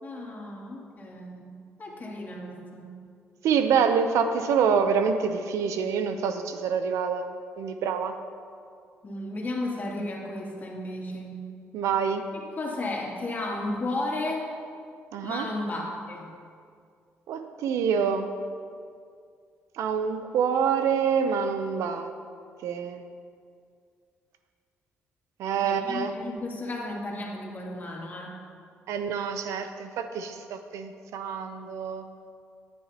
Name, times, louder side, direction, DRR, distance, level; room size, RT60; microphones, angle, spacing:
voice 1, 0.0-3.0 9.0-11.5 12.3-14.5 15.2-16.3 25.6-28.4, left 2 dB, 40° left, -2 dB, 2.6 m, -34 dB
voice 2, 3.4-8.2 11.7-12.2 15.1-15.5 17.3-18.3 19.8-22.1 22.6-23.0 25.4-26.1 28.9-32.1, right 6 dB, 80° right, 8 dB, 0.7 m, -26 dB
15.0 x 10.0 x 2.9 m, 2.3 s
cardioid pair, 80°, 5 cm